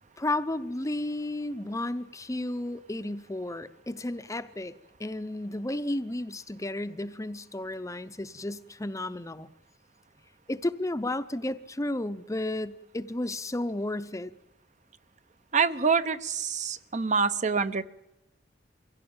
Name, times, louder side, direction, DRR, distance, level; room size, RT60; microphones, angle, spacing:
voice 1, 0.2-4.7 5.0-9.5 10.5-14.3, left 1 dB, 15° left, 13 dB, 0.7 m, -33 dB
voice 2, 15.5-17.8, right 5 dB, 40° right, 13 dB, 0.9 m, -26 dB
24.0 x 17.0 x 8.8 m, 0.88 s
head